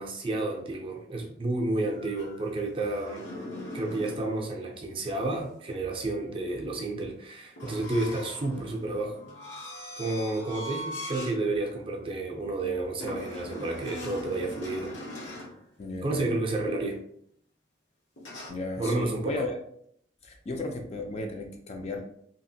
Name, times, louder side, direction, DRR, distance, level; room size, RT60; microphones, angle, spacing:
voice 1, 0.0-3.2 3.7-9.2 10.0-14.9 16.0-17.0 18.8-19.4, right 2 dB, 30° right, 1 dB, 0.4 m, -31 dB
sound 1, 2.0-4.3 7.6-11.4 11.8-12.0 13.0-15.6 18.2-18.5, left 1 dB, 80° left, 0.9 m, -40 dB
voice 2, 15.8-16.3 18.5-19.6 20.2-22.0, left 2 dB, 35° left, 2 dB, 0.4 m, -35 dB
2.8 x 2.4 x 2.7 m, 0.68 s
head